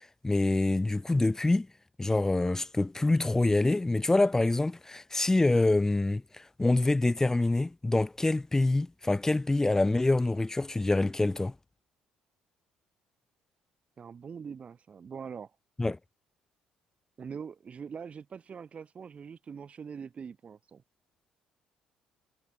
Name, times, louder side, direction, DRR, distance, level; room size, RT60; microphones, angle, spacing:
voice 1, 0.2-1.7 2.0-11.5 15.8-16.0, left 2 dB, 15° left, 0.9 m, -26 dB
voice 2, 14.0-15.5 17.2-20.8, right 6 dB, 45° right, 2.3 m, -43 dB
hypercardioid pair, 60°, 3 cm